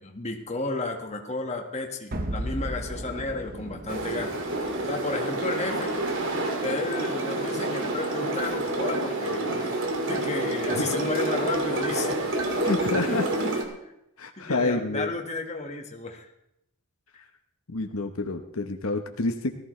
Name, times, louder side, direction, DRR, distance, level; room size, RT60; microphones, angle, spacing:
voice 1, 0.0-4.3 4.8-5.9 6.6-9.8 10.1-12.2 13.1-13.2 14.4-16.3, left 2 dB, 30° left, 2 dB, 1.7 m, -32 dB
sound 1, 2.1-7.2, right 1 dB, 40° right, 1.0 m, -37 dB
sound 2, 3.9-13.6, right 2 dB, 60° right, 2.2 m, -28 dB
voice 2, 12.6-13.5 14.2-15.1 17.7-19.5, left 3 dB, 70° left, 5 dB, 1.0 m, -28 dB
18.5 x 14.0 x 3.3 m, 0.81 s
head